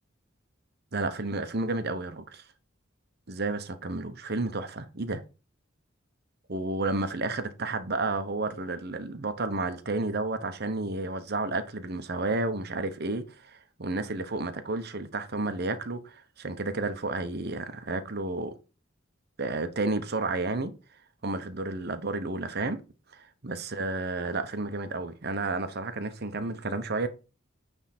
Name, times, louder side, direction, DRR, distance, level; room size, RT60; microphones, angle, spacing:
voice 1, 0.9-2.5 3.3-5.2 6.5-18.5 19.4-20.7 21.2-22.8 23.1-27.1, right 2 dB, 55° right, 1.0 m, -31 dB
9.5 x 3.6 x 4.3 m
head